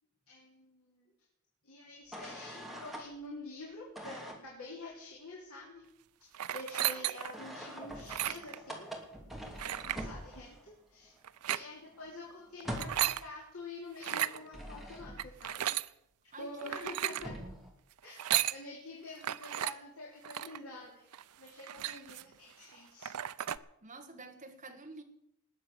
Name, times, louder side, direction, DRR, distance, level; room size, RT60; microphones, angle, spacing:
voice 1, 0.3-1.1 1.6-5.8 6.5-8.9 9.4-11.2 11.5-15.7 16.4-17.3 18.0-21.1 21.4-23.1, left 2 dB, 65° left, 3.6 m, -47 dB
sound 1, 2.1-3.1 4.0-4.4 7.3-10.7 11.1-11.2 11.5-13.2 14.2-15.4 16.8-16.9 17.1-17.7, equal, ahead, 2.7 m, -44 dB
sound 2, 6.3-7.4 8.0-8.6 9.6-10.0 11.2-11.6 12.6-13.2 14.0-14.4 15.2-15.9 16.6-17.3 18.0-18.6 19.2-19.7 20.2-20.6 21.1-21.2 21.5-22.3 22.7-22.8 23.0-23.6, right 12 dB, 90° right, 0.5 m, -34 dB
voice 2, 16.3-17.7 23.8-25.0, right 2 dB, 35° right, 1.5 m, -50 dB
20.0 x 7.8 x 7.1 m
head